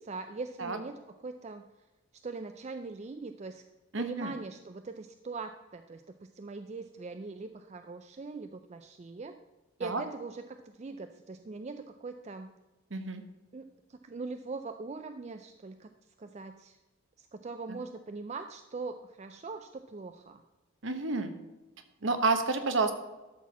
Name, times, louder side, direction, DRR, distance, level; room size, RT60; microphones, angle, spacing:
voice 1, 0.0-1.6 2.2-3.6 4.0-9.4 9.8-12.5 13.5-15.9 16.2-16.8 17.2-20.4, right 4 dB, 30° right, 7 dB, 0.4 m, -41 dB
voice 2, 3.9-4.3 9.8-10.0 12.9-13.2 17.7-17.8 20.8-21.3 22.0-23.0, right 3 dB, 60° right, 8 dB, 1.0 m, -29 dB
12.5 x 4.6 x 7.1 m, 1.1 s
head